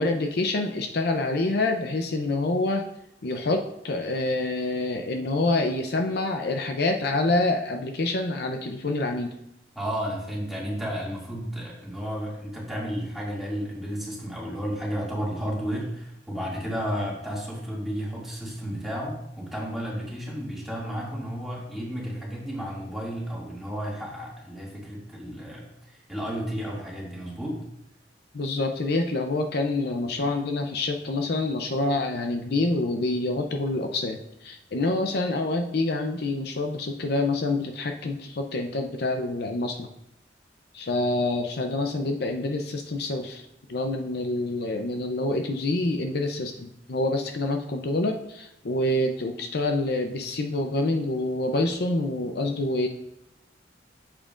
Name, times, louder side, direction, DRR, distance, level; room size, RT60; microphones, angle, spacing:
voice 1, 0.0-2.8 3.2-9.3 28.3-39.9 40.7-52.9, left 2 dB, 65° left, 5 dB, 0.6 m, -27 dB
voice 2, 9.7-27.6, equal, ahead, -6 dB, 2.2 m, -32 dB
8.7 x 7.5 x 2.5 m, 0.80 s
head